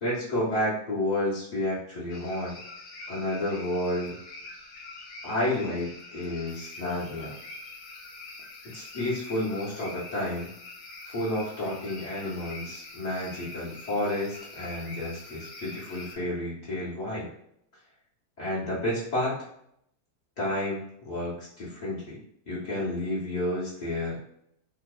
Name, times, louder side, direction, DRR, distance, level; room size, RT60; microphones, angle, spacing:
voice 1, 0.0-2.6 3.1-4.2 5.2-7.3 8.7-10.5 11.1-17.3 18.4-19.4 20.4-22.2 22.5-24.2, left 1 dB, 55° left, -9 dB, 0.4 m, -31 dB
sound 1, 2.1-16.2, left 3 dB, 75° left, 1.1 m, -44 dB
2.8 x 2.0 x 2.3 m, 0.73 s
omnidirectional pair, 1.7 m